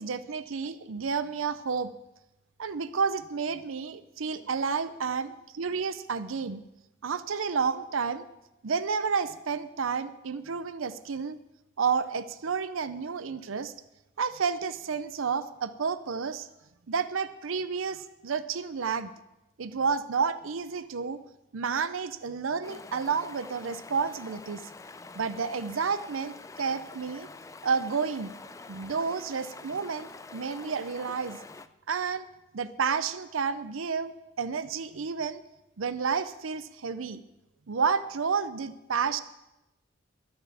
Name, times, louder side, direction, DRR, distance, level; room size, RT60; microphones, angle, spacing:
voice 1, 0.0-1.9 2.6-6.6 7.0-8.2 8.6-11.4 11.8-13.7 14.2-16.5 16.9-19.1 19.6-21.2 21.5-24.6 25.2-27.3 27.6-28.3 28.7-31.4 31.9-32.3 32.5-34.1 34.4-35.4 35.8-37.2 37.7-39.2, right 5 dB, 90° right, 14 dB, 0.6 m, -30 dB
Stream, 22.6-31.7, left 3 dB, 15° left, 0.4 m, -46 dB
12.5 x 9.6 x 6.9 m, 0.93 s
head